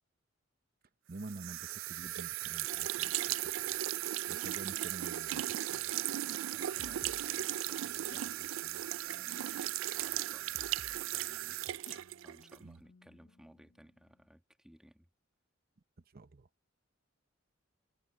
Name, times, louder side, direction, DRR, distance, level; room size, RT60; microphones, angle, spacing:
voice 1, 1.1-3.8 4.3-5.9 12.6-12.8 16.1-16.5, right 3 dB, 50° right, 0.7 m, -48 dB
sound 1, 1.2-12.6, right 14 dB, 80° right, 0.3 m, -37 dB
voice 2, 6.5-11.6 12.2-15.1, equal, 5° right, 1.6 m, -60 dB
sound 2, 6.8-14.2, left 3 dB, 80° left, 0.8 m, -59 dB
head